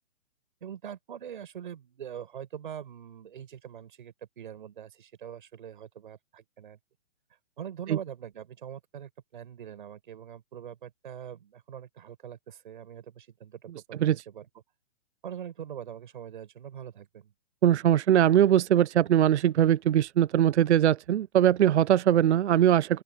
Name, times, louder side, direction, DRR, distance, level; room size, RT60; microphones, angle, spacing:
voice 1, 0.6-6.8 7.3-14.5 15.2-17.3, right 9 dB, 40° right, 7.0 m, -43 dB
voice 2, 17.6-23.0, right 11 dB, 65° right, 0.5 m, -21 dB
open air
hypercardioid pair, 180°, 37 cm